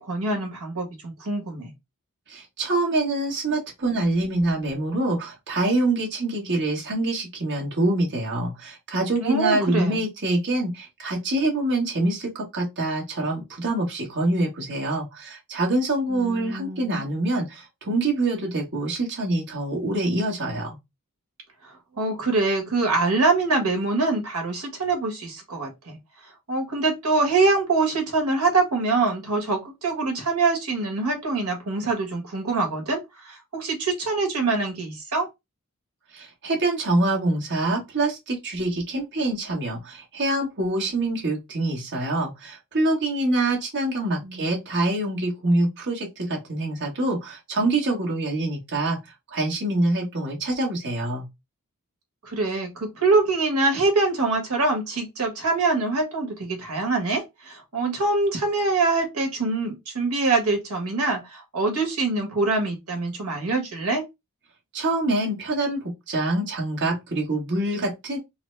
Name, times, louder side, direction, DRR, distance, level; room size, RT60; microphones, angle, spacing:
voice 1, 0.0-1.7 9.2-10.0 16.1-17.0 21.6-25.9 26.5-35.3 44.2-44.5 52.2-64.0, right 3 dB, 75° right, 1.4 m, -24 dB
voice 2, 2.3-20.8 36.1-51.3 64.7-68.2, right 2 dB, 55° right, 1.3 m, -25 dB
4.0 x 2.0 x 3.2 m
head